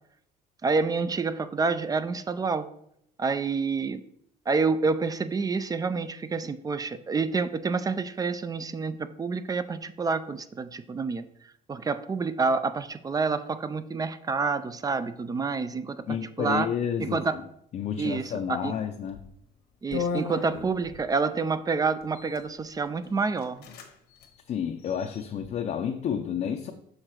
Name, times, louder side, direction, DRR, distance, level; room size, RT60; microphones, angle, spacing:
voice 1, 0.6-2.7 3.2-4.0 4.5-16.7 17.0-17.4 18.0-18.7 19.8-23.7, right 4 dB, 20° right, 13 dB, 0.4 m, -28 dB
voice 2, 16.1-17.4 17.7-19.2 24.5-26.7, left 8 dB, 45° left, 4 dB, 0.5 m, -30 dB
sound 1, 19.1-19.3 19.9-21.1 22.0-22.5 23.0-23.1 23.4-23.9 24.2-24.3 24.8-25.5, left 5 dB, 75° left, 1.1 m, -35 dB
6.4 x 3.8 x 4.5 m, 0.73 s
cardioid pair, 110°, 17 cm